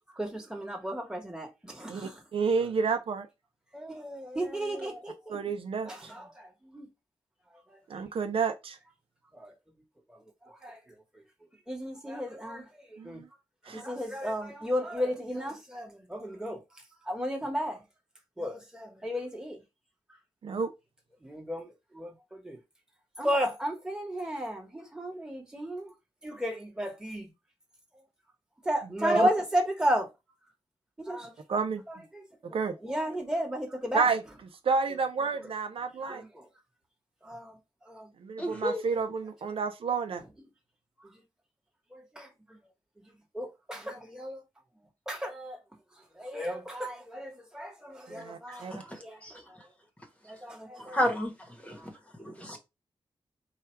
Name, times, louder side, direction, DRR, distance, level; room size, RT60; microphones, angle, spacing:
voice 1, 0.2-2.2 3.7-5.4 5.8-6.9 7.7-7.8 9.3-9.5 10.4-10.8 11.7-13.2 13.7-16.6 17.1-17.8 18.4-19.6 21.2-22.6 23.2-25.9 26.2-27.3 28.6-30.1 31.0-31.3 31.9-32.0 32.4-32.6 32.8-34.1 36.0-36.5 37.2-37.6 37.9-38.1 41.0-41.1 41.9-42.6 43.3-44.4 45.1-45.6 46.1-48.7 49.0-49.2 50.2-51.0 51.7-51.9, equal, 5° right, 1.3 m, -33 dB
voice 2, 1.9-3.3 5.3-6.1 7.9-8.8 13.0-13.3 13.7-13.8 20.4-20.7 31.5-31.8 32.5-32.8 33.9-34.2 34.6-36.2 38.2-40.2 48.1-48.7, right 5 dB, 75° right, 0.6 m, -30 dB
voice 3, 38.4-38.8 48.5-49.4 50.8-51.9 52.2-52.6, equal, 15° left, 1.0 m, -33 dB
4.8 x 2.4 x 4.4 m
wide cardioid pair, 170°, 9 cm